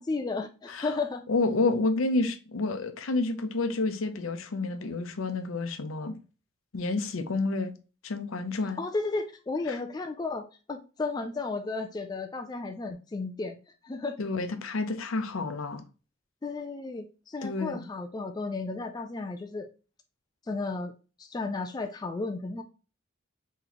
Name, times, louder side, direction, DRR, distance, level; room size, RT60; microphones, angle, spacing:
voice 1, 0.0-1.2 8.8-13.6 13.8-14.1 16.4-19.7 20.5-20.9 21.2-22.6, left 3 dB, 20° left, 0.3 m, -33 dB
voice 2, 1.3-6.1 6.7-7.7 8.0-8.8 9.7-9.8 14.2-15.8 17.4-17.9, left 3 dB, 75° left, 0.6 m, -29 dB
4.0 x 3.1 x 2.9 m
head